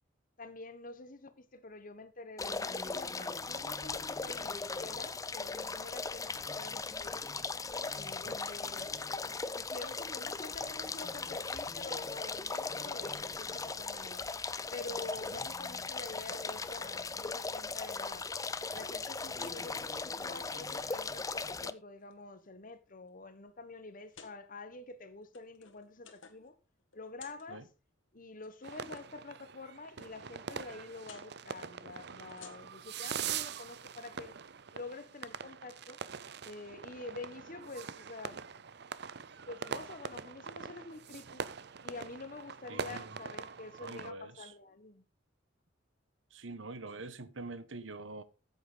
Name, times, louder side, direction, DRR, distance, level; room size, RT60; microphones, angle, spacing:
voice 1, 0.4-7.2 7.9-8.9 9.5-14.2 14.7-18.3 18.7-26.6 26.9-27.7 28.1-34.4 34.7-36.0 36.4-38.4 39.5-41.4 41.8-45.0, left 3 dB, 45° left, 1.4 m, -47 dB
sound 1, 2.4-21.7, left 4 dB, 20° left, 0.6 m, -38 dB
sound 2, 17.9-18.1 18.5-19.0 19.3-19.7 20.3-20.5 20.8-21.4 22.0-22.5 23.1-23.2 24.0-24.4 25.1-26.5 26.8-27.5 28.3-29.0 31.0-31.3 32.2-32.9, left 5 dB, 85° left, 1.9 m, -56 dB
sound 3, 28.6-44.1, right 7 dB, 60° right, 0.7 m, -43 dB
voice 2, 42.7-43.2 43.8-44.5 46.3-48.2, right 3 dB, 80° right, 1.3 m, -45 dB
14.0 x 8.1 x 4.1 m
head